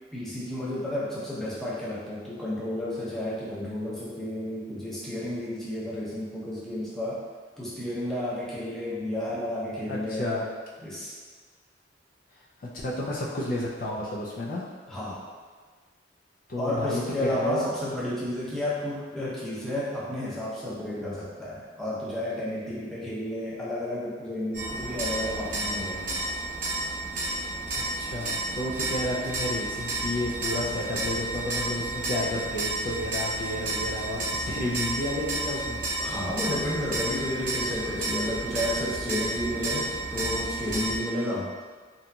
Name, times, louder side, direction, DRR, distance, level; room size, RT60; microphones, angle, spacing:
voice 1, 0.1-7.2 7.6-10.3 10.8-11.1 14.9-15.2 16.6-26.2 36.0-41.5, left 1 dB, ahead, -9 dB, 0.6 m, -32 dB
voice 2, 9.9-10.5 12.6-14.6 16.5-17.7 27.8-35.9, left 1 dB, 50° left, -4 dB, 0.4 m, -31 dB
sound 1, 24.5-41.0, right 2 dB, 50° right, 0.8 m, -31 dB
2.8 x 2.6 x 2.2 m, 1.5 s
head